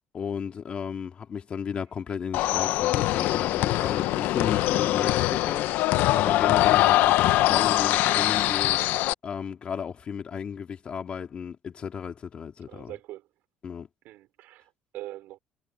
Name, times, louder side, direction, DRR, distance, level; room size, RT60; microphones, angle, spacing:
voice 1, 0.1-12.9 13.6-13.9, left 7 dB, 35° left, 2.4 m, -34 dB
sound 1, 2.3-9.1, left 16 dB, 80° left, 0.7 m, -23 dB
voice 2, 12.6-13.3 14.0-15.4, right 15 dB, 75° right, 4.6 m, -42 dB
cardioid pair, 130°, 3 cm